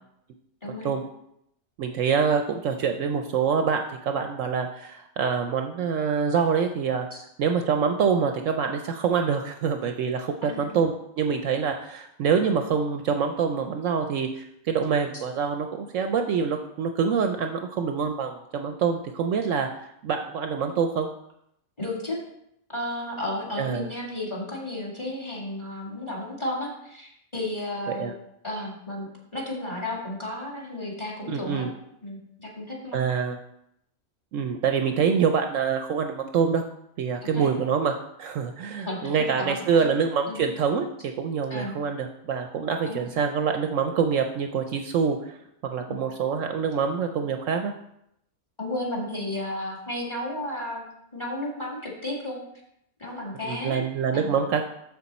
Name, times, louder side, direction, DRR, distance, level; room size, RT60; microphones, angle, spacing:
voice 1, 1.8-7.1 7.4-19.7 20.0-21.1 23.6-23.9 27.9-28.1 31.3-31.7 32.9-33.4 34.3-36.7 37.0-45.4 45.6-47.7 53.4-54.6, right 6 dB, 70° right, 5 dB, 0.9 m, -25 dB
voice 2, 10.4-10.8 15.1-15.2 21.8-22.2 22.7-28.1 28.4-31.7 32.0-33.2 37.2-37.5 38.8-39.9 40.3-40.4 41.5-41.7 42.9-43.1 45.9-46.0 48.6-50.8 51.1-52.4 53.0-53.8 54.1-54.4, left 1 dB, 20° left, -3 dB, 2.0 m, -33 dB
6.9 x 6.7 x 4.2 m, 0.78 s
omnidirectional pair, 1.5 m